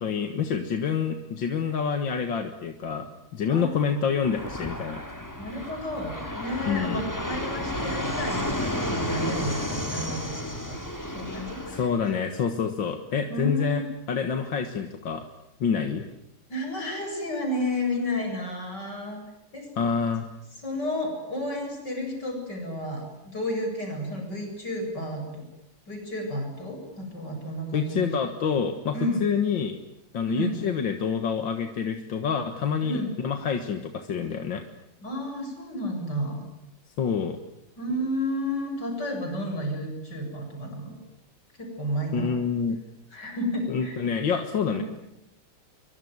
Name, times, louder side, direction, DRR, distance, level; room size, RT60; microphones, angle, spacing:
voice 1, 0.0-5.0 6.7-7.0 11.7-15.2 15.6-16.0 19.8-20.3 27.7-29.0 29.2-29.8 30.1-34.6 37.0-37.4 42.1-42.8 43.7-44.8, left 6 dB, 80° left, 6 dB, 2.3 m, -27 dB
voice 2, 3.5-4.1 5.4-10.4 10.7-10.8 11.1-12.2 13.3-13.8 16.5-19.2 19.5-19.7 20.6-25.2 25.9-28.1 28.9-29.2 30.3-30.6 32.8-33.1 35.0-36.4 37.8-41.0 41.6-42.3 43.1-44.0 44.7-44.8, left 1 dB, 60° left, 2 dB, 8.3 m, -31 dB
Fixed-wing aircraft airplane, 4.2-11.9, left 1 dB, 10° left, 3.5 m, -32 dB
24.5 x 24.0 x 9.5 m, 0.82 s
omnidirectional pair, 2.1 m